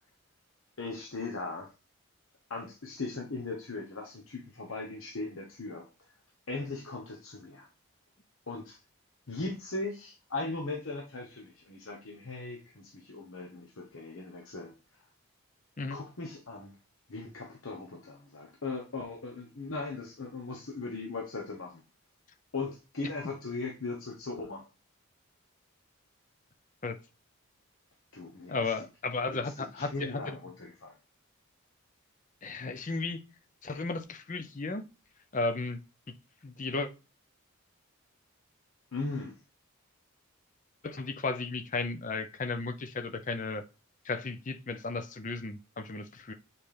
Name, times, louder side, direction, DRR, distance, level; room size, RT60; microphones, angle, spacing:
voice 1, 0.8-1.7 2.5-5.9 6.5-7.7 8.5-8.8 9.3-14.7 15.9-16.8 17.1-21.8 22.5-24.6 28.1-28.7 29.2-30.9 38.9-39.4, left 3 dB, 70° left, 1.0 m, -38 dB
voice 2, 28.5-30.4 32.4-33.2 33.6-34.8 35.3-35.8 36.4-36.9 40.8-43.6 44.0-46.3, left 3 dB, 35° left, 0.6 m, -34 dB
7.5 x 4.3 x 3.3 m
head